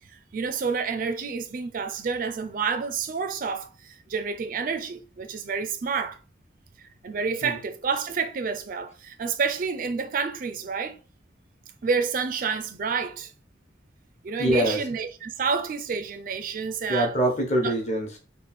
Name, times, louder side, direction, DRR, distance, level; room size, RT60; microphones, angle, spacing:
voice 1, 0.1-6.2 6.8-11.0 11.8-13.3 14.2-17.1 17.6-17.7, right 5 dB, 45° right, 0.4 m, -29 dB
voice 2, 14.4-14.8 16.9-18.2, right 1 dB, 35° left, 1.0 m, -24 dB
3.2 x 2.4 x 4.1 m
head